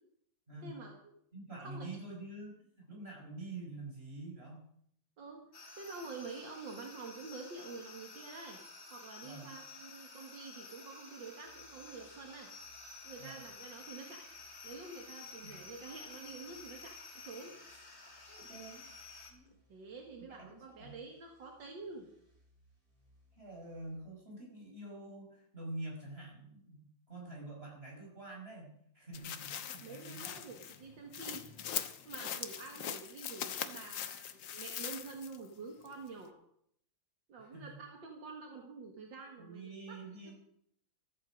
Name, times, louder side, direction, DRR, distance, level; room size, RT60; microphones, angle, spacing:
voice 1, 0.6-0.9 1.6-2.0 5.2-5.5 5.7-8.6 8.9-12.5 13.0-14.3 14.6-17.0 17.2-17.5 19.7-22.1 29.8-31.4 32.0-36.4 37.3-40.0 40.3-40.4, right 4 dB, 75° right, 2 dB, 2.4 m, -48 dB
voice 2, 1.3-4.7 9.2-9.5 13.2-13.4 15.4-15.8 18.3-18.9 19.3-19.5 20.2-21.0 23.4-30.4 37.4-37.8 39.4-40.3, right 2 dB, 30° right, -2 dB, 6.2 m, -47 dB
sound 1, 5.5-19.3, left 4 dB, 35° left, 2.3 m, -52 dB
sound 2, 11.4-23.9, equal, 45° right, 6.1 m, -70 dB
sound 3, 29.1-35.5 35.9-36.0, left 9 dB, 75° left, 1.7 m, -41 dB
15.0 x 14.0 x 5.2 m, 0.69 s
omnidirectional pair, 2.1 m